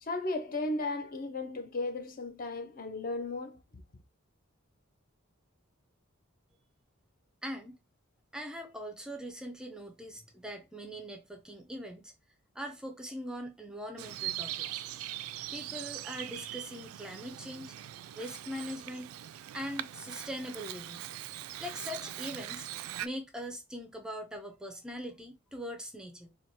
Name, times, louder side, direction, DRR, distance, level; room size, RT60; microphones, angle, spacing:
voice 1, 0.0-3.6, left 2 dB, 45° left, 0.6 m, -35 dB
voice 2, 7.4-7.8 8.3-12.1 12.5-14.8 15.5-17.8 18.1-19.1 19.5-21.1 21.6-22.7 23.0-26.3, equal, 5° right, 0.4 m, -41 dB
Bird vocalization bird call bird song, 14.0-23.1, right 13 dB, 90° right, 0.3 m, -41 dB
4.4 x 2.2 x 2.7 m
head